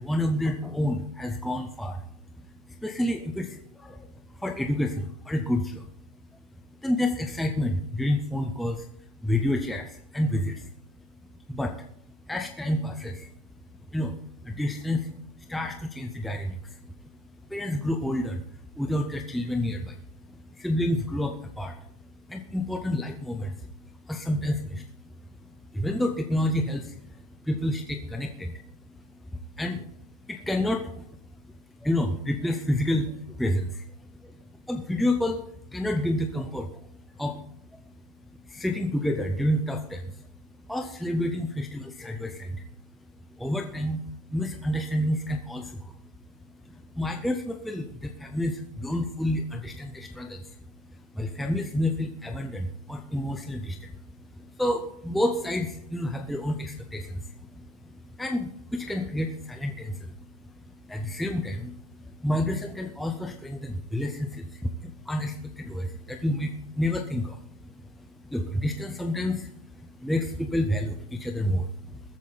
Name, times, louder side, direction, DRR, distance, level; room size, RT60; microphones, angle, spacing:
voice 1, 0.0-2.0 2.8-5.9 6.8-8.9 9.2-10.7 11.5-11.8 12.3-13.3 13.9-14.1 14.4-15.1 15.4-16.8 17.5-20.0 20.3-21.8 22.3-23.7 24.0-24.9 25.7-28.6 29.6-29.9 30.3-31.1 31.8-33.9 34.2-34.4 34.7-35.4 35.7-36.9 37.2-37.5 38.4-40.2 40.7-42.6 43.4-44.0 44.3-45.9 46.7-50.6 51.1-54.0 54.4-60.1 60.4-60.5 60.9-67.6 68.0-72.0, left 1 dB, ahead, 4 dB, 0.5 m, -29 dB
20.5 x 8.3 x 3.9 m, 0.70 s
supercardioid pair, 165°, 20 cm